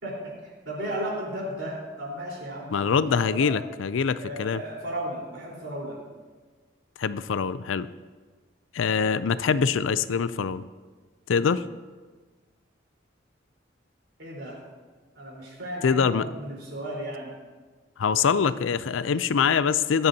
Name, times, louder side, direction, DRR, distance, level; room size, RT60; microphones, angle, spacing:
voice 1, 0.0-2.8 3.3-3.5 4.1-6.0 14.2-14.6 15.1-17.3, right 1 dB, 70° right, -4 dB, 4.1 m, -35 dB
voice 2, 2.7-4.6 7.0-7.9 8.7-10.6 11.3-11.6 15.8-16.2 18.0-20.1, left 6 dB, 85° left, 15 dB, 0.4 m, -24 dB
22.5 x 7.9 x 2.8 m, 1.4 s
head